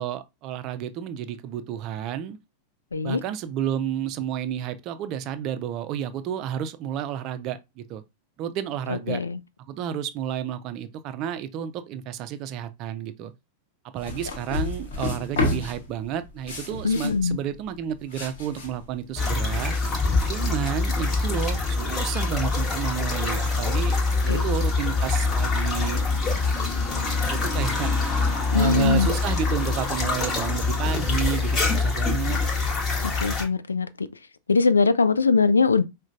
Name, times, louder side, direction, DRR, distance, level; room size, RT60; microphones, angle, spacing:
voice 1, 0.0-2.4 3.0-8.0 8.4-9.2 9.7-13.3 13.9-19.7 20.3-24.0 24.2-26.0 27.3-32.4, right 9 dB, 40° right, 0.4 m, -31 dB
voice 2, 8.9-9.4 16.8-17.4 24.3-24.4 28.5-29.1 33.0-34.1 34.5-35.8, left 4 dB, 75° left, 0.3 m, -21 dB
sound 1, 14.0-21.5, left 2 dB, 60° left, 1.2 m, -32 dB
sound 2, 19.2-33.4, left 3 dB, 25° left, 1.0 m, -24 dB
4.9 x 2.2 x 2.5 m
figure-of-eight pair, 90°, 0 cm